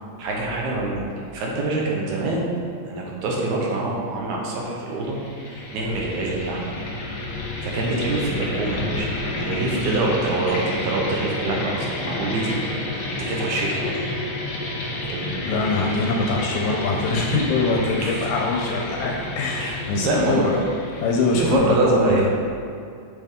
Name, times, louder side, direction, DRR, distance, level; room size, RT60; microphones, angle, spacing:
voice 1, 0.2-2.5 2.9-5.2 5.4-6.7 7.6-12.6 12.9-14.1 15.1-15.4 18.0-18.2 19.6-19.8 20.0-20.4 21.3-22.3, right 2 dB, 75° right, -2 dB, 2.2 m, -25 dB
sound 1, 5.0-21.7, left 2 dB, 55° left, 1.6 m, -30 dB
voice 2, 15.4-20.7 21.0-22.3, left 3 dB, 75° left, 0 dB, 1.8 m, -23 dB
6.6 x 5.6 x 3.6 m, 2.4 s
omnidirectional pair, 3.6 m